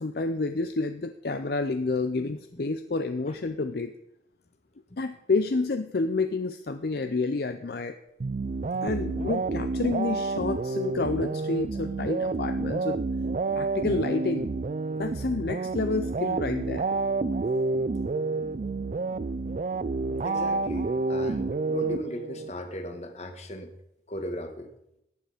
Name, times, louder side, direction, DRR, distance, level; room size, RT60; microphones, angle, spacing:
voice 1, 0.0-3.9 5.0-7.9 8.8-13.0 13.6-14.5 15.0-16.9, left 3 dB, 60° left, 9 dB, 0.6 m, -29 dB
voice 2, 2.2-2.6 3.3-3.4 6.9-7.0 8.5-9.3 18.0-18.1 20.2-23.7 24.1-24.7, equal, 40° left, 6 dB, 1.5 m, -38 dB
sound 1, 8.2-22.5, right 3 dB, 45° right, 0.4 m, -29 dB
14.5 x 9.2 x 5.0 m, 0.83 s
head